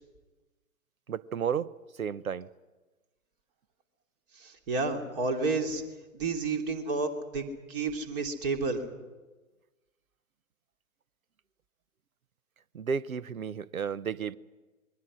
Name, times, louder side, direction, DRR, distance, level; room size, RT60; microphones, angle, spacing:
voice 1, 1.1-1.7 2.0-2.5 12.7-14.4, right 7 dB, 75° right, 0.9 m, -32 dB
voice 2, 4.4-5.8 6.1-8.8, right 3 dB, 40° right, 3.1 m, -31 dB
27.5 x 22.0 x 6.3 m
figure-of-eight pair, 120°, 42 cm